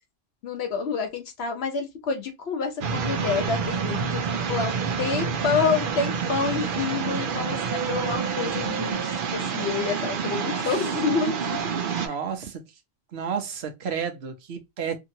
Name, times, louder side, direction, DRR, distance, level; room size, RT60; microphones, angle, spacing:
voice 1, 0.4-11.6, left 5 dB, 80° left, 1.1 m, -28 dB
sound 1, 2.8-12.1, right 6 dB, 60° right, 0.7 m, -28 dB
voice 2, 10.1-10.7 11.9-12.6 13.1-14.9, right 7 dB, 90° right, 1.0 m, -32 dB
2.8 x 2.5 x 2.7 m
omnidirectional pair, 1.1 m